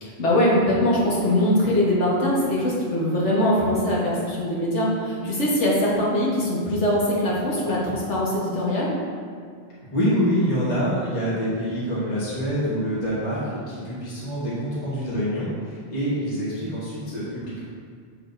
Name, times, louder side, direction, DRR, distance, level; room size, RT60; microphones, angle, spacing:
voice 1, 0.0-9.0, left 1 dB, 90° left, -5 dB, 1.7 m, -22 dB
voice 2, 9.9-17.6, equal, 40° left, -8 dB, 1.4 m, -26 dB
6.9 x 6.3 x 2.6 m, 2.1 s
omnidirectional pair, 1.2 m